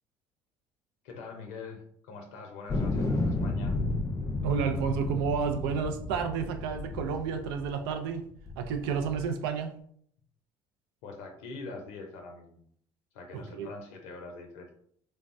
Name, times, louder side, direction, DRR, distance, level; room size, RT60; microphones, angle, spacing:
voice 1, 1.0-3.8 11.0-12.6 13.1-14.7, left 3 dB, 85° left, 3 dB, 0.5 m, -44 dB
sound 1, 2.7-7.9 8.5-9.2, left 2 dB, 30° left, 0.6 m, -32 dB
voice 2, 4.4-8.2 8.6-9.8 13.6-13.7, right 6 dB, 90° right, 6 dB, 0.4 m, -30 dB
3.3 x 2.0 x 2.5 m, 0.63 s
supercardioid pair, 80°, 12 cm